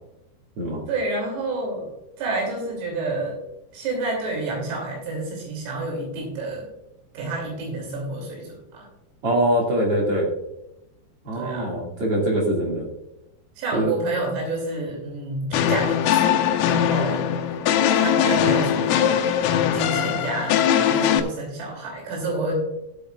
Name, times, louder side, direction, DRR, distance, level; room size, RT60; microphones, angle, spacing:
voice 1, 0.9-1.9 2.2-3.4 3.7-6.7 7.2-8.9 11.3-11.7 13.6-17.6 18.0-19.5 19.7-22.6, right 2 dB, 80° right, -1 dB, 5.6 m, -29 dB
voice 2, 9.2-10.3 11.2-12.9 13.7-13.9, right 1 dB, 50° right, -2 dB, 1.8 m, -23 dB
sound 1, 15.5-21.2, left 9 dB, 85° left, 3.4 m, -21 dB
16.5 x 8.4 x 2.4 m, 0.87 s
omnidirectional pair, 6.0 m